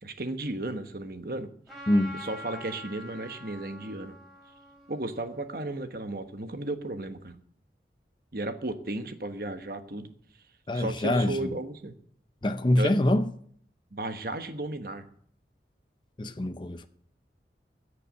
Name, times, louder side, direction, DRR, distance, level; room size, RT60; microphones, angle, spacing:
voice 1, 0.0-1.5 2.1-4.1 4.9-7.4 8.3-10.1 10.7-11.9 12.8-12.9 13.9-15.0, right 2 dB, 55° right, 1.2 m, -34 dB
Trumpet, 1.7-6.3, equal, ahead, 4.4 m, -46 dB
voice 2, 1.9-2.2 10.7-11.4 12.4-13.3 16.2-16.9, left 1 dB, 25° left, 0.5 m, -25 dB
14.0 x 6.8 x 8.4 m
head